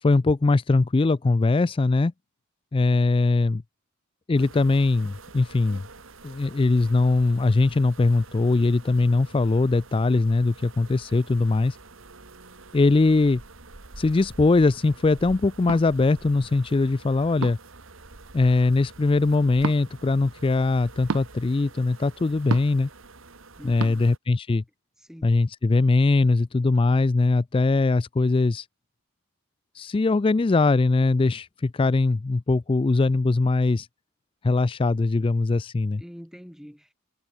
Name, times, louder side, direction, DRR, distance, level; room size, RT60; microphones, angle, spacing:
voice 1, 0.0-2.1 2.7-3.6 4.3-5.8 6.2-11.8 12.7-13.4 14.0-17.6 18.3-22.9 23.6-24.6 25.2-28.7 29.7-33.9 34.4-36.0, left 3 dB, 25° left, 0.3 m, -21 dB
sound 1, 4.4-24.2, right 3 dB, 60° right, 1.8 m, -47 dB
sound 2, 15.7-15.9 17.4-17.7 19.6-19.8 21.1-21.3 22.5-22.8 23.8-23.9, right 5 dB, 80° right, 0.6 m, -29 dB
voice 2, 23.6-24.0 25.0-25.4 36.0-36.9, equal, ahead, 4.8 m, -44 dB
head